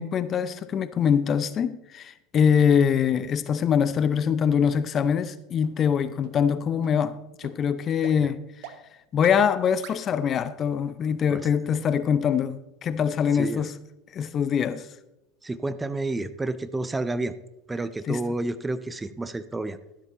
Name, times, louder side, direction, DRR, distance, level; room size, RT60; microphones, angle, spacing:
voice 1, 0.0-8.5 9.1-13.7 14.1-14.9 18.1-18.2, left 7 dB, 35° left, 0.6 m, -23 dB
sound 1, 3.2-3.3 3.8-3.9 4.4-4.5 5.0-5.1 5.6-5.7 6.2-6.3 6.8-6.9 7.4-7.5 8.0-8.1 8.6-8.7 9.2-9.3 9.8-9.9, right 12 dB, 60° right, 0.9 m, -42 dB
voice 2, 13.3-13.6 15.4-17.3 17.7-19.8, right 2 dB, 15° right, 0.6 m, -30 dB
13.0 x 11.5 x 3.0 m
figure-of-eight pair, 80°, 0 cm